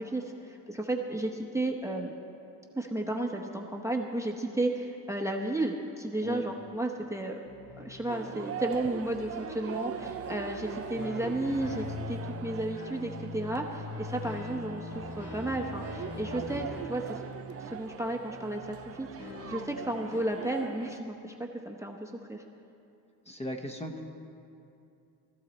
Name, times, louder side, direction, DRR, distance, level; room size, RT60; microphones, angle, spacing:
voice 1, 0.0-2.1 2.7-7.4 7.8-17.2 17.6-21.3 21.6-22.4, right 1 dB, 10° right, 1 dB, 0.9 m, -33 dB
sound 1, 7.4-20.2, left 2 dB, 85° left, 2.7 m, -42 dB
sound 2, 8.1-21.0, right 9 dB, 35° right, 0.5 m, -42 dB
voice 2, 23.3-24.0, left 1 dB, 15° left, 2 dB, 1.0 m, -37 dB
19.0 x 13.5 x 4.2 m, 2.7 s
cardioid pair, 130°, 39 cm